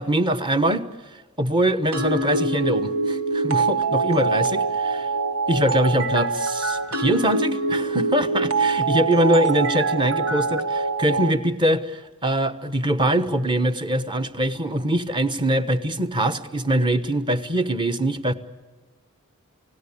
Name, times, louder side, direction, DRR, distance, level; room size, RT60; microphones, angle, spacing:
voice 1, 0.0-5.1 5.5-18.3, right 1 dB, 20° right, 1.1 m, -23 dB
sound 1, 1.9-11.3, right 3 dB, 75° right, 1.7 m, -24 dB
29.0 x 17.5 x 8.5 m
head